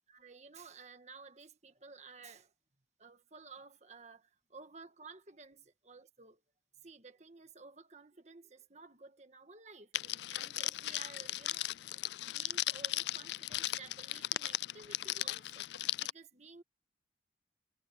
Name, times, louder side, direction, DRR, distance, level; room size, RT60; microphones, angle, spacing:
voice 1, 0.1-2.5 3.0-6.4 6.8-15.6 16.0-16.6, right 4 dB, 40° right, 1.6 m, -54 dB
Crackle, 9.9-16.1, left 16 dB, 75° left, 0.3 m, -37 dB
head